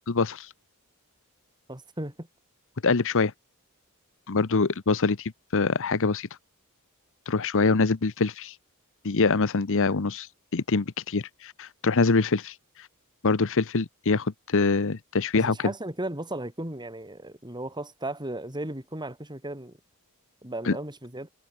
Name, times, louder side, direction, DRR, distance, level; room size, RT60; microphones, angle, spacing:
voice 1, 0.1-0.5 2.8-3.3 4.3-6.3 7.3-8.5 9.0-10.3 10.5-12.5 13.2-15.7 20.6-20.8, left 4 dB, 60° left, 0.9 m, -24 dB
voice 2, 1.7-2.3 15.3-19.7 20.4-21.3, right 1 dB, 20° right, 6.7 m, -35 dB
head